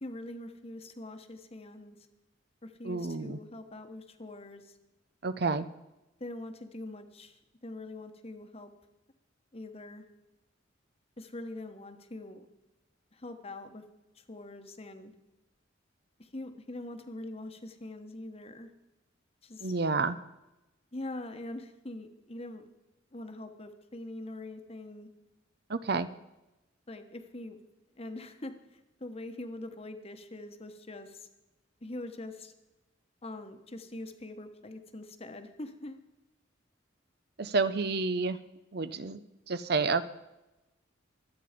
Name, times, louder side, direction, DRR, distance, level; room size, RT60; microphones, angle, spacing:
voice 1, 0.0-2.0 2.6-4.6 6.2-8.7 9.5-10.0 11.2-12.4 13.1-13.8 14.3-15.1 16.2-18.7 19.4-19.7 20.9-22.6 23.1-25.1 26.9-27.6 28.0-31.3 31.8-32.5 33.2-36.0, left 2 dB, 30° left, 8 dB, 1.2 m, -43 dB
voice 2, 2.8-3.4 5.2-5.7 19.6-20.2 25.7-26.1 37.4-38.4 38.7-39.2 39.5-40.1, right 4 dB, 55° right, 13 dB, 0.7 m, -29 dB
23.5 x 8.7 x 5.1 m, 0.99 s
head